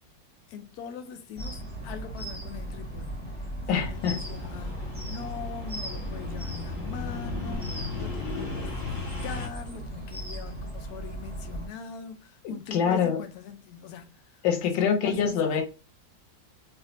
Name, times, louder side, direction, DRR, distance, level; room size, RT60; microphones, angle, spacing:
voice 1, 0.5-3.4 3.7-14.2 14.7-15.5, left 6 dB, 70° left, 0.9 m, -42 dB
sound 1, 1.4-11.7, right 1 dB, 5° right, 0.8 m, -37 dB
voice 2, 3.7-4.2 12.4-13.2 14.4-15.6, left 7 dB, 85° left, 1.4 m, -25 dB
sound 2, 3.8-9.5, left 4 dB, 50° left, 1.6 m, -36 dB
3.2 x 2.8 x 2.6 m
omnidirectional pair, 1.9 m